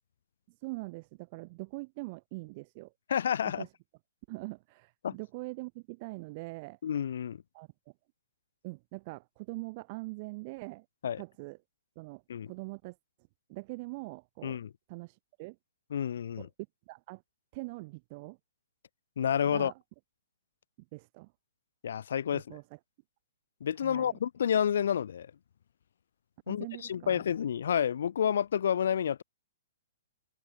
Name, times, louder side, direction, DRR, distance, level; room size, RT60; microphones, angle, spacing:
voice 1, 0.5-2.9 3.6-3.7 4.3-6.8 7.5-7.7 8.6-10.9 11.2-11.6 12.0-13.0 13.5-14.6 14.9-15.6 16.4-16.5 16.9-17.2 17.5-18.4 19.5-19.8 20.9-21.3 22.3-22.8 23.8-24.2 26.5-27.2, right 25 dB, 30° right, 0.6 m, -43 dB
voice 2, 3.1-3.6 5.0-5.1 6.8-7.4 11.0-11.2 12.3-12.5 14.4-14.7 15.9-16.5 19.2-19.7 21.8-22.4 23.6-25.3 26.5-29.2, left 8 dB, 60° left, 0.5 m, -29 dB
hypercardioid pair, 170°, 0 cm